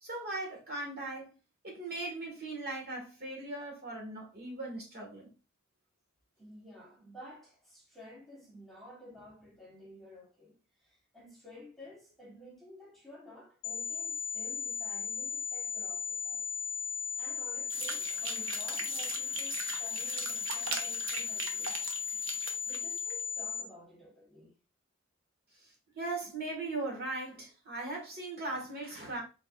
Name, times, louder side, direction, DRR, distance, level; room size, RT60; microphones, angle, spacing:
voice 1, 0.0-1.4 1.6-5.3 25.6-29.2, right 2 dB, 50° right, 1.6 m, -39 dB
voice 2, 6.4-16.5 17.2-21.9 22.6-24.6, left 1 dB, ahead, 1.3 m, -53 dB
sound 1, 13.6-23.6, left 7 dB, 60° left, 0.4 m, -36 dB
sound 2, 17.7-23.1, right 4 dB, 70° right, 0.9 m, -40 dB
4.5 x 4.0 x 2.3 m
head